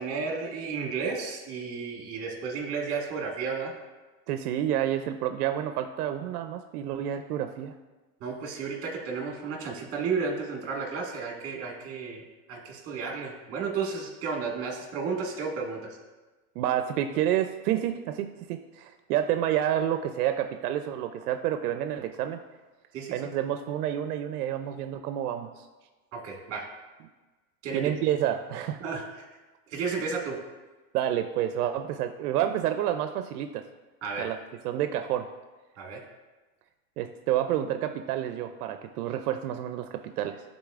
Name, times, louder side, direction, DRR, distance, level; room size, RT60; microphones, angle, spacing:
voice 1, 0.0-3.7 8.2-12.2 12.5-15.8 22.9-23.2 26.1-26.7 27.6-27.8 28.8-29.0 29.7-30.4 34.0-34.2 35.8-36.0, right 5 dB, 30° right, -1 dB, 1.6 m, -32 dB
voice 2, 4.3-7.7 16.6-22.4 23.1-25.7 27.7-28.8 30.9-33.6 34.2-34.4 34.6-35.3 37.0-40.4, right 11 dB, 80° right, 7 dB, 0.6 m, -29 dB
11.5 x 4.1 x 2.4 m, 1.2 s
supercardioid pair, 150°, 45 cm